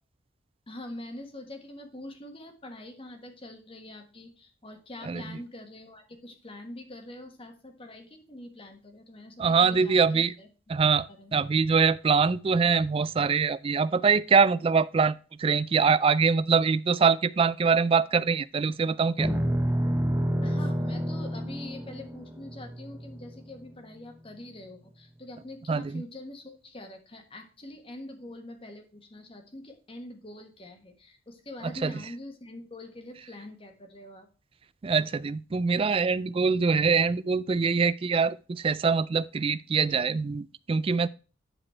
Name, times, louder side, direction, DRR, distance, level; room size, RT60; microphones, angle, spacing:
voice 1, 0.7-10.5 11.1-11.4 20.4-34.3, left 1 dB, 30° left, 1.4 m, -44 dB
voice 2, 9.4-10.3 10.7-11.1 11.3-19.3 25.7-25.9 31.8-31.9 34.8-41.1, right 5 dB, 30° right, 0.3 m, -24 dB
sound 1, 19.2-23.6, equal, 10° right, 0.7 m, -29 dB
10.5 x 4.2 x 4.3 m
head